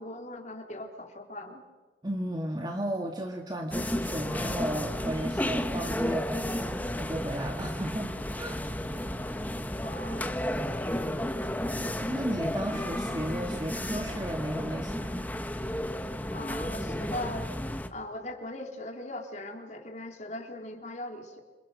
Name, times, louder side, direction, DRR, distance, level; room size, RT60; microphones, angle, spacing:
voice 1, 0.0-1.6 9.8-10.4 16.3-17.5 17.9-21.4, left 1 dB, 40° left, 4 dB, 3.4 m, -39 dB
voice 2, 2.0-8.6 12.0-15.2, right 1 dB, 25° right, 3 dB, 1.8 m, -34 dB
sound 1, 3.7-17.9, left 1 dB, 10° left, 1.2 m, -32 dB
27.5 x 27.5 x 6.3 m, 1.3 s
head